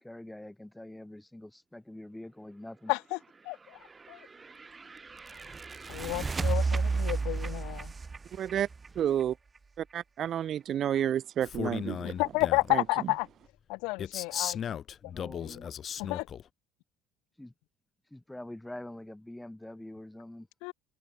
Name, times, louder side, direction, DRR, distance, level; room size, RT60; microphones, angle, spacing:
voice 1, 0.0-2.9 15.0-15.7 17.4-17.5 18.1-20.5, left 1 dB, 5° left, 2.9 m, -45 dB
voice 2, 2.9-3.2 3.4-3.8 4.1-4.2 5.9-7.9 12.0-13.3 13.7-14.8 15.0-15.5 16.0-16.3 20.6-20.7, left 28 dB, 85° left, 0.8 m, -31 dB
sound 1, 3.8-9.6, right 4 dB, 20° right, 0.4 m, -33 dB
voice 3, 8.4-8.7 9.0-9.3 9.9-12.1 12.7-12.8, right 10 dB, 45° right, 0.7 m, -30 dB
Male speech man speaking, 11.4-12.8 14.0-16.4, left 8 dB, 40° left, 1.4 m, -36 dB
cardioid pair, 135°, 0 cm